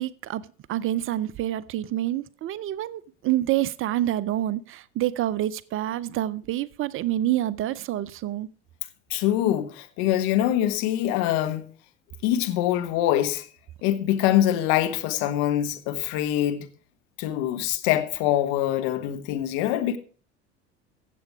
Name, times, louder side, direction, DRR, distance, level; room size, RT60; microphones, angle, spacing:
voice 1, 0.0-8.5, right 13 dB, 40° right, 0.5 m, -27 dB
voice 2, 9.1-11.7 12.2-13.5 13.8-16.7 17.2-20.0, left 12 dB, 60° left, 1.5 m, -24 dB
15.0 x 7.7 x 4.8 m
figure-of-eight pair, 70°, 34 cm